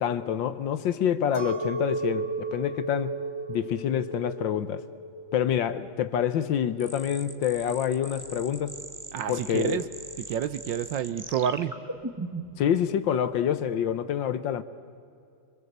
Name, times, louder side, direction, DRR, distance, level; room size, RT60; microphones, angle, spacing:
voice 1, 0.0-3.2 3.5-4.9 5.3-8.8 9.3-9.8 12.6-14.6, left 9 dB, 65° left, 13 dB, 1.5 m, -27 dB
Chink clink, 1.3-6.8, right 2 dB, 15° left, 3.3 m, -34 dB
sound 1, 6.8-12.6, right 2 dB, 10° right, 0.9 m, -40 dB
voice 2, 9.1-9.8 10.3-11.7, right 9 dB, 65° right, 13 dB, 1.4 m, -28 dB
27.0 x 24.0 x 8.0 m, 2.5 s
omnidirectional pair, 2.4 m